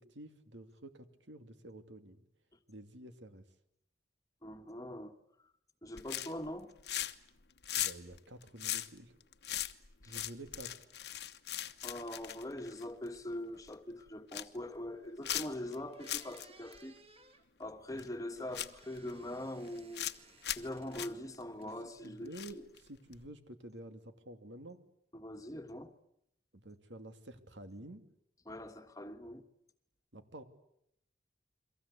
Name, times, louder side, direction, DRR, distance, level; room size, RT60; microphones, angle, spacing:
voice 1, 0.0-2.2 2.7-3.4 7.7-9.1 10.1-10.9 17.9-18.1 18.4-18.7 21.6-21.7 22.0-24.9 26.5-28.1 30.1-30.4, right 1 dB, 80° right, 2.6 m, -50 dB
voice 2, 4.4-5.2 5.8-6.7 10.0-10.2 11.8-16.9 17.6-20.1 20.6-22.6 25.1-25.9 28.4-29.4, left 1 dB, 20° left, 1.4 m, -43 dB
sound 1, 6.0-6.5 6.8-7.3 7.6-13.2 13.6-13.7 14.1-14.6 15.2-15.7 16.0-16.5 16.7-16.8 18.0-18.1 18.5-19.1 19.7-20.2 20.4-20.7 20.9-21.1 22.3-22.8 23.1-23.3, left 12 dB, 65° left, 1.1 m, -39 dB
sound 2, 15.2-15.3 15.7-17.4 18.3-21.1 21.4-22.1, right 3 dB, 35° right, 2.8 m, -61 dB
29.5 x 23.5 x 8.4 m
head